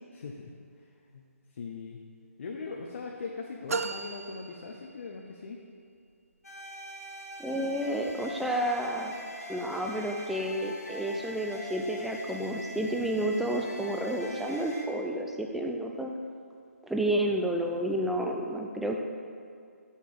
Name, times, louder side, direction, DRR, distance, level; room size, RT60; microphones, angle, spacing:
voice 1, 0.1-0.5 0.8-0.9 1.1-1.2 1.5-2.0 2.4-5.6, left 4 dB, 50° left, 0 dB, 0.8 m, -40 dB
sound 1, 3.7-5.4, right 4 dB, 70° right, 0.4 m, -36 dB
sound 2, 6.4-14.8, left 1 dB, 85° left, 1.5 m, -42 dB
voice 2, 7.4-9.1 9.5-16.1 16.8-19.0, right 1 dB, ahead, 1 dB, 0.4 m, -30 dB
6.6 x 5.5 x 6.9 m, 2.3 s
figure-of-eight pair, 145°, 8 cm